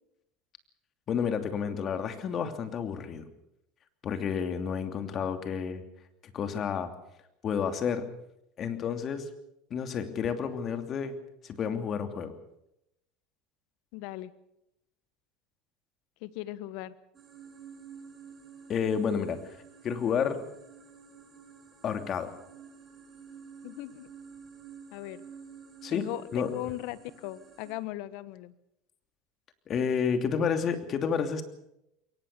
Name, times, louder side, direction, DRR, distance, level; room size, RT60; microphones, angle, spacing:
voice 1, 1.1-3.2 4.0-5.8 6.2-6.9 7.4-8.1 8.6-9.3 9.7-11.2 11.4-12.3 18.7-19.4 19.8-20.4 21.8-22.3 25.8-26.1 26.3-26.5 29.7-31.4, left 7 dB, 40° left, 7 dB, 2.9 m, -30 dB
voice 2, 13.9-14.3 16.2-16.9 23.6-24.1 24.9-25.2 25.9-28.5, left 16 dB, 65° left, 16 dB, 1.2 m, -38 dB
sound 1, 17.1-27.7, right 6 dB, 30° right, 7.0 m, -50 dB
22.5 x 19.0 x 6.9 m, 0.82 s
hypercardioid pair, 90°, 0 cm